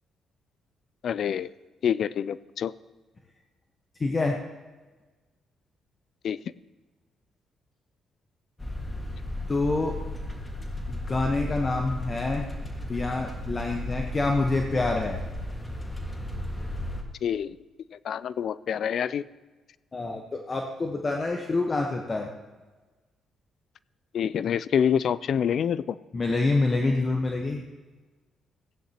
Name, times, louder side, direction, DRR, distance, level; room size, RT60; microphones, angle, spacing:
voice 1, 1.0-1.5 1.8-2.7 6.2-6.4 17.2-17.6 17.9-19.2 24.1-26.0, left 8 dB, 65° left, 18 dB, 0.3 m, -26 dB
voice 2, 4.0-4.4 9.5-10.0 10.9-12.5 12.9-15.2 19.9-22.3 26.1-27.7, left 3 dB, 35° left, 2 dB, 1.0 m, -27 dB
sound 1, 8.6-17.0, left 1 dB, 15° left, 1.7 m, -34 dB
15.5 x 10.0 x 2.9 m, 1.3 s
cardioid pair, 85°, 0 cm